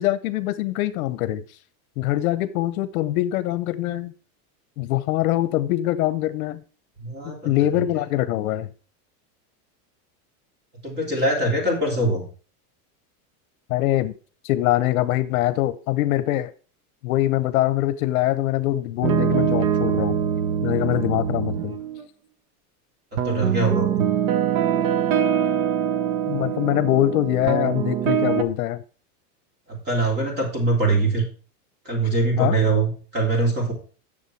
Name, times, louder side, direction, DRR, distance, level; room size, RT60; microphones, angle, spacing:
voice 1, 0.0-1.4 2.0-4.1 4.8-6.6 7.2-8.7 13.7-14.1 14.4-16.5 17.0-20.2 20.6-21.8 26.3-28.8 32.4-32.6, left 15 dB, 70° left, 0.8 m, -23 dB
voice 2, 7.0-7.8 10.8-12.2 23.2-24.0 29.8-31.2 31.8-33.7, right 2 dB, 20° right, 3.2 m, -23 dB
sound 1, 19.0-22.0 23.2-28.4, right 9 dB, 70° right, 1.2 m, -23 dB
8.8 x 6.8 x 4.5 m
supercardioid pair, 170°, 45 cm